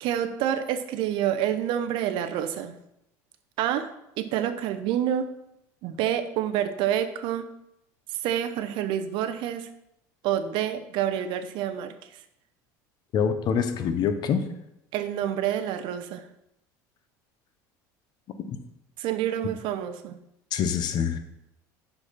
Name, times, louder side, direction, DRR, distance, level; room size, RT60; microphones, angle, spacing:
voice 1, 0.0-2.8 3.6-3.9 4.2-5.3 5.8-7.5 8.2-9.7 10.2-11.9 14.9-16.2 19.0-20.2, right 10 dB, 65° right, 10 dB, 0.7 m, -28 dB
voice 2, 13.1-14.4 20.5-21.2, left 7 dB, 50° left, 9 dB, 0.9 m, -25 dB
6.1 x 5.3 x 5.8 m, 0.83 s
supercardioid pair, 105°, 9 cm